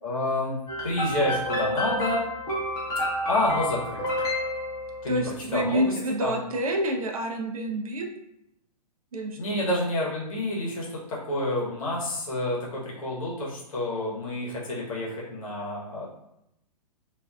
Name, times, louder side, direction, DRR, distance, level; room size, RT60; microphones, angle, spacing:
voice 1, 0.0-0.6 0.8-2.2 3.2-4.2 5.0-6.4 9.3-16.1, left 1 dB, 55° left, -4 dB, 0.9 m, -29 dB
sound 1, 0.7-5.3, left 1 dB, 15° left, 0.8 m, -29 dB
voice 2, 5.1-8.1 9.1-9.4, right 1 dB, 60° right, 2 dB, 0.5 m, -28 dB
2.5 x 2.3 x 2.3 m, 0.80 s
figure-of-eight pair, 115°, 21 cm